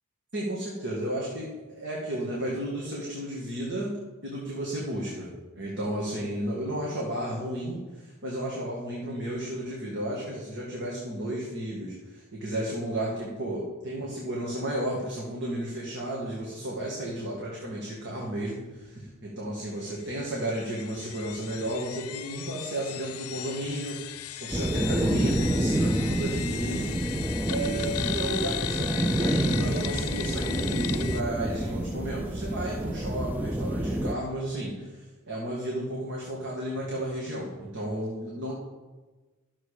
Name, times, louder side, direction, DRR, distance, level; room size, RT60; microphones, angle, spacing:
voice 1, 0.3-3.9 4.2-27.0 27.5-38.5, right 1 dB, 55° right, -4 dB, 2.0 m, -33 dB
sound 1, 20.0-31.2, left 12 dB, 85° left, 0.6 m, -37 dB
sound 2, 24.5-34.1, right 1 dB, 10° right, 0.4 m, -28 dB
12.0 x 7.1 x 5.0 m, 1.3 s
head